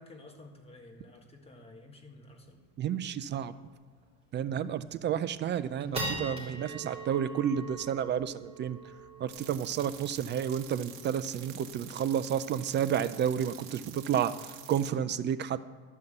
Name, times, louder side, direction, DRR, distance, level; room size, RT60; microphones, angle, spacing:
voice 1, 0.0-2.6, left 2 dB, 15° left, 2 dB, 1.7 m, -52 dB
sound 1, 2.4-2.5 2.8-2.9 3.3-3.5 4.0-4.1 4.7-5.0 5.5-12.1, right 2 dB, 15° right, 3.7 m, -42 dB
voice 2, 2.8-3.5 4.3-8.8 9.2-15.6, right 9 dB, 30° right, 14 dB, 0.4 m, -31 dB
sound 2, 9.3-14.9, right 10 dB, 60° right, 1.4 m, -48 dB
12.0 x 5.6 x 7.9 m, 1.5 s
cardioid pair, 125°, 35 cm